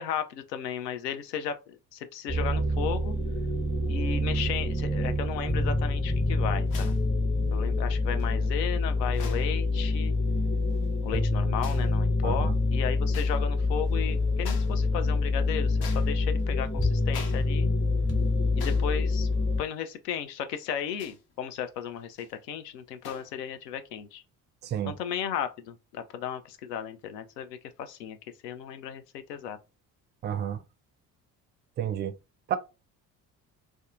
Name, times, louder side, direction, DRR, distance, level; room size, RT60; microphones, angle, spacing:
voice 1, 0.0-3.2 3.9-7.0 7.5-10.2 11.0-17.7 18.6-19.3 19.6-24.2 24.9-28.2 28.4-29.6, left 8 dB, 80° left, 0.5 m, -35 dB
sound 1, 2.3-19.6, left 2 dB, 10° left, 0.7 m, -26 dB
sound 2, 6.7-7.0 8.2-8.3 9.1-9.5 10.6-10.9 11.6-11.9 13.1-13.4 13.8-13.9 14.4-14.8 15.2-16.4 17.1-17.5 17.8-17.9 18.5-18.9 19.3-19.4 20.9-21.3 22.0-22.3 23.0-23.3, left 6 dB, 50° left, 0.8 m, -45 dB
voice 2, 12.2-12.5 24.6-24.9 30.2-30.6 31.8-32.1 32.5-32.6, right 9 dB, 25° right, 0.4 m, -30 dB
sound 3, 13.4-18.8, left 5 dB, 30° left, 1.1 m, -37 dB
2.5 x 2.2 x 2.5 m
figure-of-eight pair, 50°, 48 cm